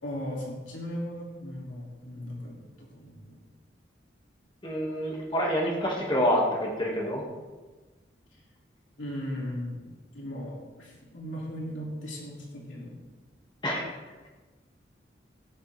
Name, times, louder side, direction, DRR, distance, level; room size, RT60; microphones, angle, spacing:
voice 1, 0.0-3.4 8.3-8.4 9.0-12.9, equal, 90° left, -3 dB, 3.0 m, -37 dB
voice 2, 4.6-7.2 13.6-13.8, equal, 25° left, -2 dB, 2.2 m, -27 dB
14.5 x 10.5 x 3.5 m, 1.3 s
head